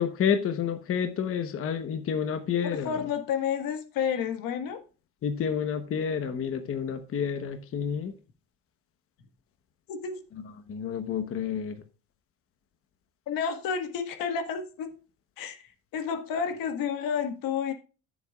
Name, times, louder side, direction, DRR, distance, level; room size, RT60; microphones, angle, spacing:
voice 1, 0.0-3.0 5.2-8.1 10.7-11.8, left 7 dB, 40° left, 1.0 m, -29 dB
voice 2, 2.6-4.8 9.9-10.2 13.3-14.9 15.4-17.7, left 7 dB, 80° left, 1.7 m, -30 dB
13.5 x 7.4 x 2.4 m
cardioid pair, 145°, 34 cm